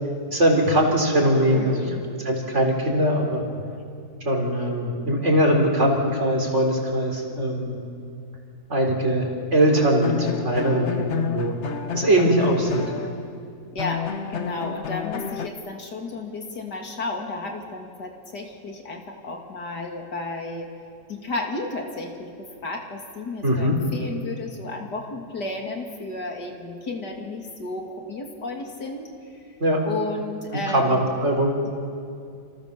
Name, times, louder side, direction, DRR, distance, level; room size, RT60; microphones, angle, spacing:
voice 1, 0.3-1.8 2.2-3.4 4.2-7.7 8.7-9.2 9.5-11.5 11.9-12.8 23.4-23.8 29.6-29.8 30.7-31.5, right 1 dB, 45° right, 1 dB, 4.5 m, -21 dB
voice 2, 1.5-2.1 13.7-20.7 21.1-29.4 29.8-31.2 31.6-31.7, left 2 dB, 80° left, 2 dB, 3.3 m, -33 dB
sound 1, 9.7-13.4 13.8-15.5, left 8 dB, 50° left, 1.1 m, -30 dB
28.0 x 27.5 x 6.9 m, 2.4 s
omnidirectional pair, 1.8 m